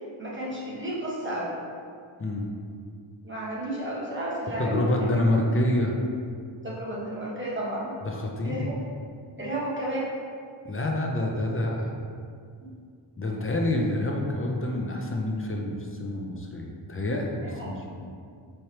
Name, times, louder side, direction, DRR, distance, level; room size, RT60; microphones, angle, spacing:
voice 1, 0.2-1.5 3.2-4.9 6.6-7.9 8.4-8.8 9.4-10.1 12.6-12.7 17.4-17.7, right 1 dB, 25° right, -7 dB, 1.0 m, -32 dB
voice 2, 4.6-6.0 8.0-8.7 10.6-12.1 13.2-18.1, left 1 dB, 30° left, 0 dB, 0.4 m, -27 dB
4.4 x 3.2 x 2.8 m, 2.2 s
wide cardioid pair, 100°, 48 cm